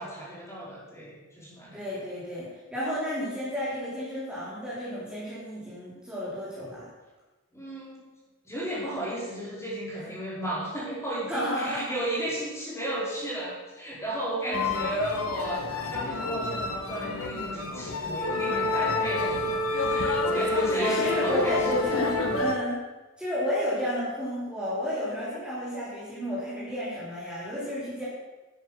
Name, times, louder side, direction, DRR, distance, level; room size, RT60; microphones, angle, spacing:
voice 1, 0.0-1.8 7.5-8.0 8.4-15.6 15.9-21.6, right 1 dB, 15° left, -6 dB, 4.5 m, -34 dB
voice 2, 1.7-6.9 11.3-11.8 14.5-14.6 20.3-20.4 20.8-22.1 22.4-22.8 23.2-28.1, equal, 5° right, -10 dB, 3.6 m, -31 dB
sound 1, 14.5-22.5, left 2 dB, 80° left, 1.4 m, -28 dB
10.5 x 9.5 x 6.3 m, 1.2 s
head